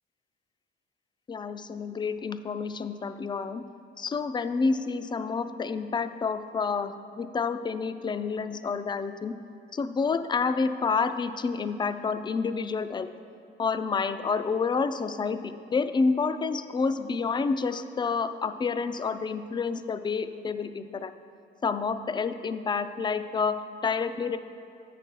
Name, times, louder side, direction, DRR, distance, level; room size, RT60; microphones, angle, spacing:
voice 1, 1.3-3.6 4.0-9.4 9.7-13.1 13.6-21.1 21.6-24.4, left 5 dB, 25° left, 11 dB, 0.3 m, -29 dB
8.2 x 5.8 x 5.3 m, 2.8 s
cardioid pair, 90°, 20 cm